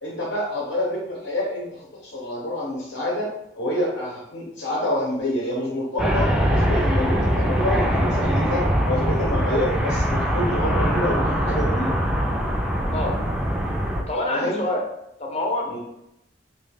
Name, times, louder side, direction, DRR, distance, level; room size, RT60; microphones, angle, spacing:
voice 1, 0.0-3.3 3.5-12.0 14.3-14.6 15.7-15.8, left 1 dB, 70° left, -4 dB, 0.8 m, -27 dB
sound 1, 6.0-14.0, equal, 5° right, 0.3 m, -22 dB
voice 2, 14.1-14.8 15.2-15.8, left 1 dB, 35° left, 0 dB, 0.6 m, -26 dB
3.0 x 2.3 x 3.3 m, 0.82 s
head